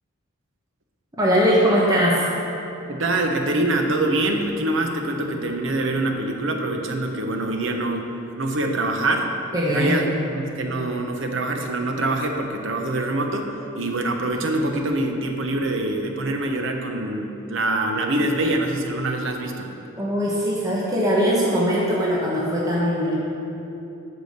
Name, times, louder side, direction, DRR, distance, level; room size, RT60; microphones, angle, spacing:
voice 1, 1.2-2.2 9.5-10.1 20.0-23.2, equal, 15° right, -6 dB, 1.2 m, -20 dB
voice 2, 2.9-9.3 9.7-19.7, right 2 dB, 65° right, 3 dB, 0.9 m, -25 dB
8.2 x 6.2 x 6.6 m, 2.8 s
head